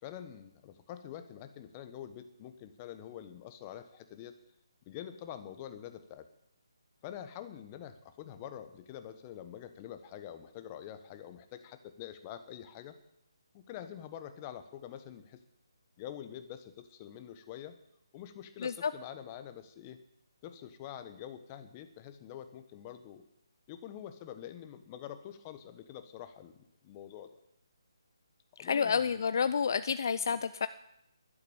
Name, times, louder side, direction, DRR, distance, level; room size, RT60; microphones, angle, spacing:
voice 1, 0.0-4.3 4.9-6.3 7.0-13.0 13.5-15.4 16.0-17.8 18.1-20.0 20.4-23.2 23.7-26.6 26.8-27.4 28.6-29.2, left 10 dB, 25° left, 9 dB, 1.3 m, -46 dB
voice 2, 28.6-30.7, left 6 dB, 50° left, 13 dB, 0.6 m, -29 dB
12.0 x 10.5 x 8.8 m, 0.78 s
figure-of-eight pair, 155°, 2 cm